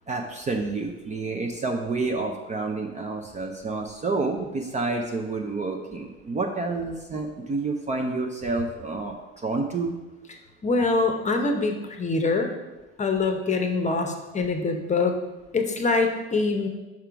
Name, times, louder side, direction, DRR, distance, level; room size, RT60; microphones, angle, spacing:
voice 1, 0.1-9.9, right 3 dB, 20° right, 2 dB, 0.5 m, -29 dB
voice 2, 10.6-12.5 13.0-15.2 15.5-16.7, left 3 dB, 20° left, 4 dB, 0.8 m, -24 dB
5.8 x 3.7 x 4.6 m, 1.1 s
supercardioid pair, 95°, 33 cm